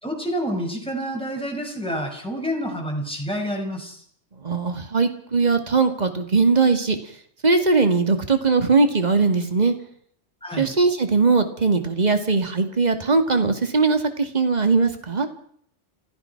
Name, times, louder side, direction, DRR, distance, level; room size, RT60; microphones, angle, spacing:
voice 1, 0.0-4.0 10.4-10.7, equal, 5° left, 1 dB, 5.9 m, -28 dB
voice 2, 4.4-7.0 7.4-9.7 10.6-15.3, right 4 dB, 35° right, 7 dB, 2.2 m, -20 dB
29.0 x 15.5 x 5.9 m, 0.63 s
omnidirectional pair, 1.2 m